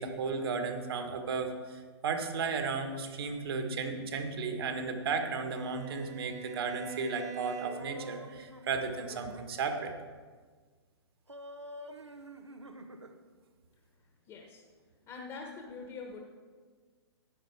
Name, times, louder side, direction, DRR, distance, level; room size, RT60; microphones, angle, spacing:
voice 1, 0.0-9.9, right 4 dB, 60° right, 5 dB, 1.7 m, -34 dB
Bowed string instrument, 5.0-8.1, right 4 dB, 25° right, 1.0 m, -45 dB
sound 1, 7.6-9.5 11.3-13.2, right 1 dB, 90° right, 1.0 m, -47 dB
voice 2, 14.3-14.6 15.1-16.2, left 4 dB, 25° left, 1 dB, 1.4 m, -44 dB
13.0 x 9.4 x 4.8 m, 1.5 s
figure-of-eight pair, 115°, 14 cm